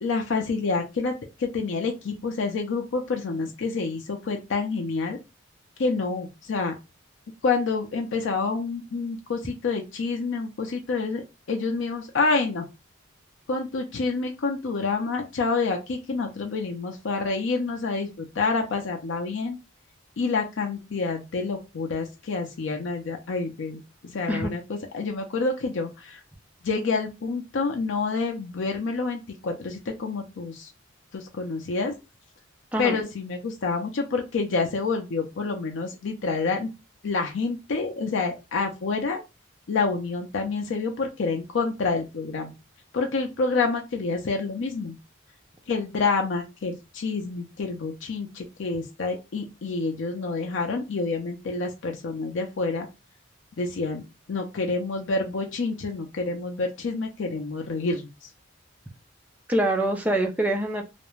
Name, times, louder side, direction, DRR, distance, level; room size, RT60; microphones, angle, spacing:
voice 1, 0.0-5.2 5.8-6.8 7.4-11.2 11.5-12.7 13.5-19.6 20.2-26.2 26.6-30.7 31.1-31.9 32.8-36.7 37.0-39.2 39.7-42.5 42.9-45.0 45.7-52.9 53.6-54.0 54.3-58.1, left 4 dB, 65° left, 3 dB, 0.5 m, -28 dB
voice 2, 59.5-60.8, right 1 dB, 10° right, 2 dB, 0.4 m, -24 dB
2.4 x 2.1 x 3.0 m, 0.26 s
head